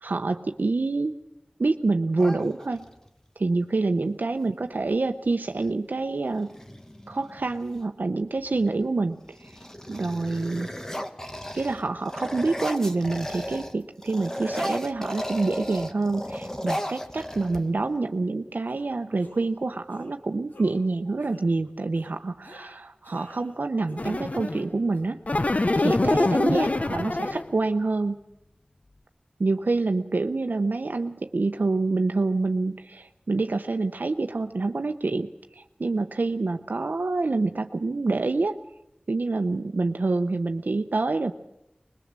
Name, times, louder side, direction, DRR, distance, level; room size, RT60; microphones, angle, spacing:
voice 1, 0.0-1.1 1.6-2.9 3.4-6.5 7.1-9.6 9.9-10.7 11.5-25.2 25.8-28.2 29.4-38.6 39.1-41.3, right 3 dB, 85° right, 7 dB, 0.7 m, -27 dB
sound 1, 2.2-3.1 4.8-4.9 5.2-5.7 6.3-7.8 8.4-8.8 9.2-13.8 14.0-18.0, equal, 20° left, 1.6 m, -35 dB
sound 2, 18.7-18.9 19.2-19.6 19.9-20.1 20.5-20.9 21.2-21.5 21.9-22.1 22.4-23.6 23.9-24.5 24.9-25.9, left 1 dB, 85° left, 2.7 m, -49 dB
sound 3, 24.0-24.6 25.3-27.5, left 2 dB, 50° left, 0.7 m, -24 dB
21.5 x 21.0 x 7.4 m, 0.87 s
wide cardioid pair, 55°, 3 cm